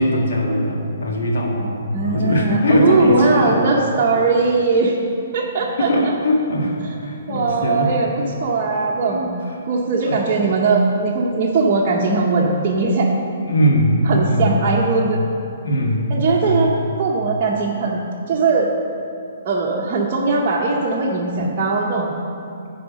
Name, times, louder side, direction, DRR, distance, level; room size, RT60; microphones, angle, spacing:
voice 1, 0.0-3.6 5.8-7.9 8.7-8.8 9.1-9.3 10.0-10.2 13.3-14.6 15.6-16.1 16.4-16.7, equal, 70° left, -1 dB, 1.7 m, -20 dB
voice 2, 1.9-5.0 5.3-6.1 7.3-9.4 9.7-13.1 14.1-15.2 16.1-16.7 17.0-18.7 19.4-22.1, right 4 dB, 30° right, -5 dB, 0.8 m, -19 dB
10.0 x 4.9 x 5.2 m, 2.6 s
hypercardioid pair, 155°, 0 cm